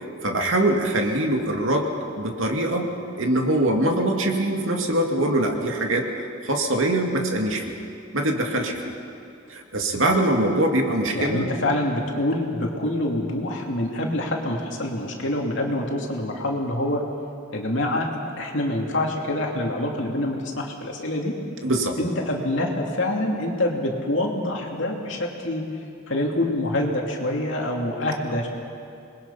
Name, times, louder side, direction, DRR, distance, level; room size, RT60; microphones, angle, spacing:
voice 1, 0.2-1.9 2.2-2.9 3.2-7.7 8.1-8.9 9.5-11.5 21.6-22.0, right 1 dB, 75° right, 2 dB, 2.4 m, -23 dB
voice 2, 11.1-17.0 17.5-18.1 18.4-21.3 22.0-25.7 26.1-28.5, left 1 dB, 65° left, 0 dB, 2.9 m, -26 dB
27.0 x 21.0 x 5.8 m, 2.6 s
head